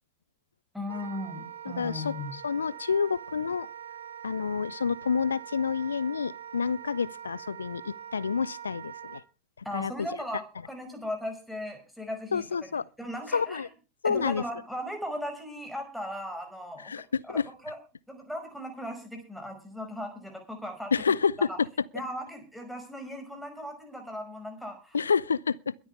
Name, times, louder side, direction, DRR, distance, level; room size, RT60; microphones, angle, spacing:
voice 1, 0.7-2.3 9.7-12.7 13.0-13.6 14.0-16.9 17.3-17.8 18.1-20.9 21.5-21.6 21.9-25.0, left 1 dB, ahead, 5.3 m, -37 dB
Wind instrument woodwind instrument, 0.9-9.2, right 9 dB, 70° right, 1.7 m, -43 dB
voice 2, 1.6-3.7 4.2-9.2 9.7-9.9 12.3-12.8 13.3-13.7 14.0-14.4 16.8-17.5 20.9-21.7 24.9-25.8, left 6 dB, 70° left, 0.6 m, -28 dB
22.5 x 9.3 x 3.4 m
figure-of-eight pair, 90°, 0 cm